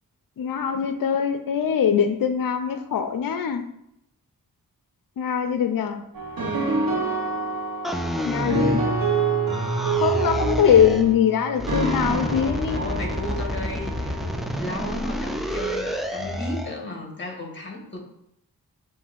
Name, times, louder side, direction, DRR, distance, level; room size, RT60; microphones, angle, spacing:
voice 1, 0.4-3.7 5.2-6.0 8.2-8.8 10.0-12.8, left 8 dB, 65° left, 0.5 m, -22 dB
sound 1, 6.1-14.7, right 3 dB, 65° right, 0.9 m, -27 dB
sound 2, 7.8-9.2 9.5-11.1 11.6-16.8, equal, ahead, 0.3 m, -29 dB
voice 2, 12.7-14.2 14.6-18.0, left 1 dB, 30° left, 1.2 m, -34 dB
7.2 x 2.6 x 2.4 m
cardioid pair, 60°, 37 cm